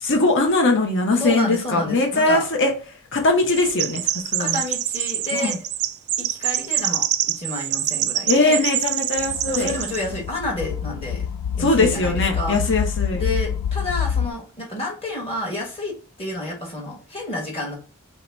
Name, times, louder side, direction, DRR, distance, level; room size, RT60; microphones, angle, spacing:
voice 1, 0.0-2.7 3.1-4.0 4.3-4.6 5.3-5.6 8.3-9.7 11.6-13.2, left 2 dB, 55° left, 2 dB, 0.9 m, -20 dB
voice 2, 1.2-2.4 4.4-5.6 6.2-8.6 9.5-11.3 11.5-12.6 13.1-17.7, left 1 dB, 25° left, -1 dB, 1.2 m, -30 dB
Chirp tweet, 3.5-10.1, right 13 dB, 50° right, 0.3 m, -25 dB
sound 1, 9.2-14.3, left 7 dB, 85° left, 0.3 m, -27 dB
2.9 x 2.9 x 4.5 m, 0.36 s
head